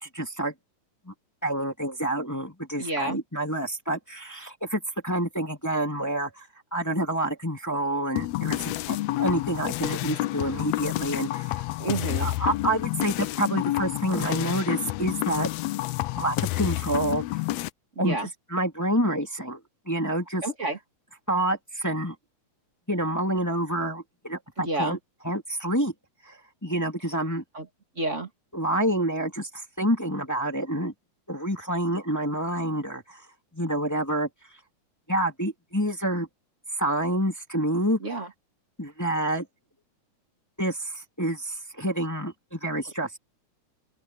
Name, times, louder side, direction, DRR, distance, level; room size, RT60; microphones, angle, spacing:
voice 1, 0.0-0.5 1.1-1.2 1.4-11.6 12.2-15.5 16.2-17.2 18.0-18.2 18.5-19.6 19.9-20.4 21.3-22.1 22.9-25.0 25.2-25.9 26.3-27.4 28.5-30.9 31.3-33.2 33.5-34.3 35.1-36.3 36.8-38.0 38.8-39.4 40.6-43.2, right 1 dB, 5° left, 2.5 m, -28 dB
voice 2, 2.8-3.2 11.8-12.3 18.0-18.3 20.4-20.8 24.6-25.0 27.5-27.7 28.0-28.3 38.0-38.3, right 2 dB, 25° right, 2.7 m, -30 dB
sound 1, 8.2-17.7, left 17 dB, 80° left, 1.6 m, -29 dB
open air
omnidirectional pair, 3.4 m